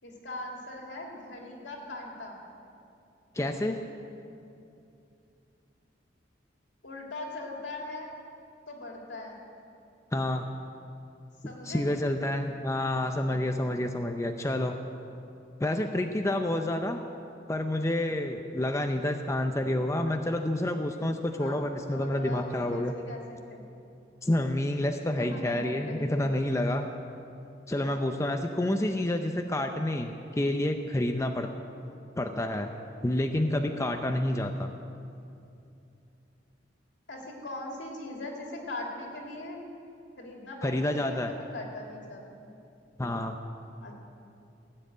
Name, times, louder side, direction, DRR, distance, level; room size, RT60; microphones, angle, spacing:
voice 1, 0.0-2.4 6.8-8.1 8.7-9.4 11.4-11.9 21.4-21.6 21.9-23.2 23.5-23.6 25.2-26.3 27.8-27.9 37.1-39.6 40.2-42.6 43.8-43.9, left 2 dB, 75° left, 0 dB, 2.8 m, -40 dB
voice 2, 3.3-3.8 10.1-10.5 11.4-14.7 15.6-17.0 17.5-22.9 24.2-26.9 27.7-31.5 32.2-32.7 33.0-34.7 40.6-41.3 43.0-43.4, left 1 dB, 15° left, 5 dB, 0.6 m, -29 dB
16.0 x 7.8 x 9.3 m, 2.7 s
head